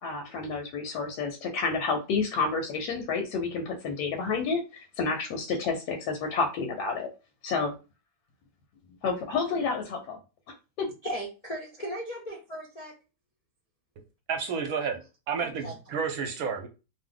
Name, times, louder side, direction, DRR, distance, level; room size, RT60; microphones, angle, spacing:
voice 1, 0.0-7.1 7.4-7.7 9.0-10.0 10.8-10.9, left 4 dB, 85° left, 1.2 m, -29 dB
voice 2, 11.0-12.9 15.4-15.7, equal, 60° left, 0.4 m, -37 dB
voice 3, 14.3-15.0 15.3-16.7, right 6 dB, 70° right, 1.0 m, -30 dB
2.7 x 2.0 x 3.7 m
omnidirectional pair, 1.7 m